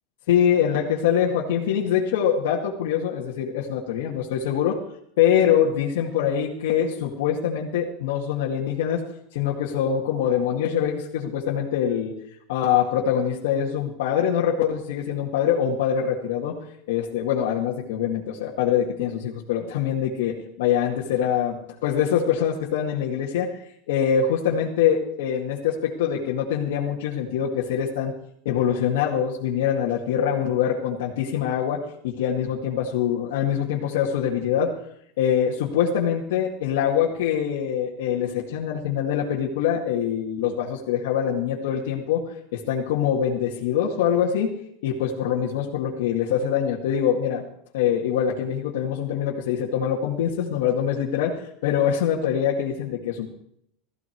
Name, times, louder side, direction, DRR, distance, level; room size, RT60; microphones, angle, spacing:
voice 1, 0.3-4.8 5.2-9.0 9.3-12.1 12.5-16.6 16.9-21.6 21.8-28.1 28.5-34.8 35.2-44.5 44.8-47.4 47.7-53.3, left 9 dB, 85° left, -2 dB, 2.2 m, -24 dB
16.0 x 14.5 x 4.7 m, 0.73 s
supercardioid pair, 170°, 0 cm